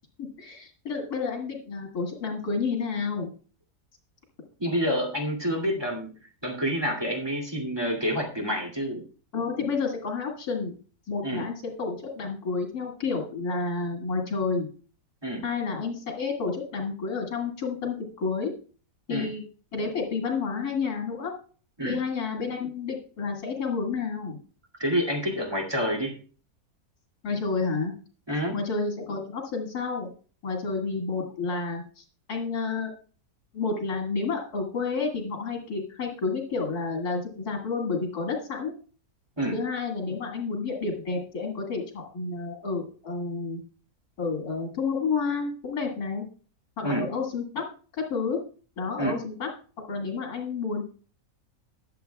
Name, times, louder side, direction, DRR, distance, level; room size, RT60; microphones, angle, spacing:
voice 1, 0.2-3.3 9.3-10.7 11.1-14.7 15.4-18.5 19.1-19.4 19.7-21.3 21.8-24.4 27.2-27.9 28.5-30.1 30.4-32.9 33.5-38.7 39.5-43.6 44.2-46.2 46.8-47.7 47.9-48.4 48.8-49.5 49.9-50.8, left 4 dB, 80° left, 0 dB, 2.5 m, -30 dB
voice 2, 4.6-6.1 6.4-9.0 11.2-11.4 15.2-15.4 19.1-19.3 21.8-22.0 24.8-26.2 28.3-28.6 39.4-39.6 46.8-47.1 49.0-49.1, equal, 15° right, -1 dB, 2.3 m, -28 dB
21.0 x 7.6 x 2.3 m, 0.39 s
omnidirectional pair, 1.6 m